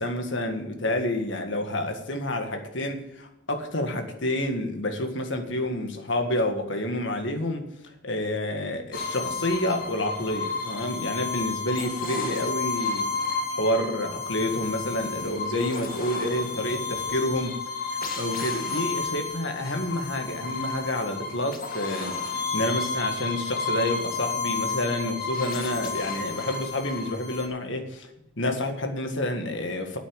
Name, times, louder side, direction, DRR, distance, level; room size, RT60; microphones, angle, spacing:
voice 1, 0.0-7.7 8.0-13.1 13.5-17.6 18.2-28.1 28.4-30.0, left 1 dB, 65° left, 5 dB, 1.8 m, -29 dB
sound 1, 8.9-27.5, left 4 dB, 45° left, 1.9 m, -31 dB
9.6 x 8.2 x 8.9 m, 0.89 s
head